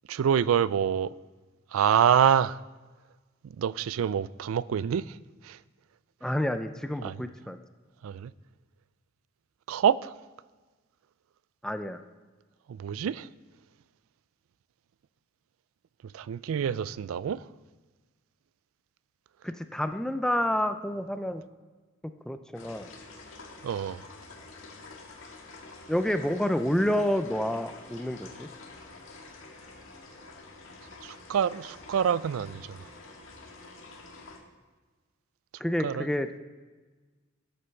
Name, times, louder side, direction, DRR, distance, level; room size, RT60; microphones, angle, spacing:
voice 1, 0.1-1.1 1.7-2.6 3.6-5.2 5.4-5.6 7.0-7.1 8.0-8.3 9.7-10.1 12.7-13.3 16.1-17.4 23.6-24.0 31.0-32.8 35.8-36.1, right 8 dB, 85° right, 0.3 m, -26 dB
voice 2, 6.2-7.6 11.6-12.0 19.4-21.4 22.3-22.9 25.9-28.5 35.6-36.3, left 1 dB, 5° left, 0.4 m, -29 dB
sound 1, 22.5-34.4, left 3 dB, 70° left, 1.8 m, -48 dB
13.0 x 6.7 x 4.5 m
head